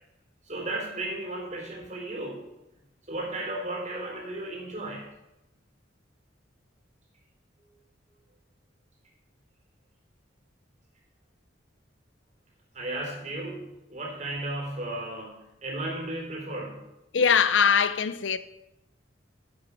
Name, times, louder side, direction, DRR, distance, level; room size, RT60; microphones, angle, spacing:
voice 1, 0.4-2.5 3.1-5.1 12.7-16.9, right 2 dB, 40° right, 3.6 m, -34 dB
voice 2, 17.1-18.4, left 6 dB, 75° left, 0.7 m, -22 dB
9.6 x 7.2 x 6.9 m
head